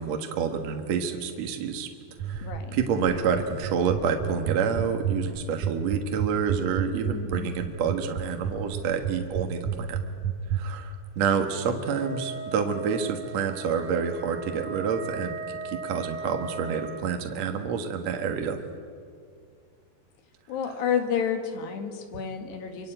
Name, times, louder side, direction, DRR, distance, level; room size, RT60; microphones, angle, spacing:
voice 1, 0.0-1.9 2.2-10.0 10.5-18.6, right 6 dB, 55° right, 4 dB, 2.0 m, -28 dB
sound 1, 2.2-10.6, right 10 dB, 85° right, 1.6 m, -29 dB
voice 2, 2.4-2.8 7.0-7.5 20.5-22.9, left 7 dB, 70° left, 5 dB, 4.2 m, -30 dB
Wind instrument woodwind instrument, 11.8-17.1, right 4 dB, 25° right, 4.0 m, -38 dB
25.5 x 25.0 x 9.1 m, 2.2 s
omnidirectional pair, 5.0 m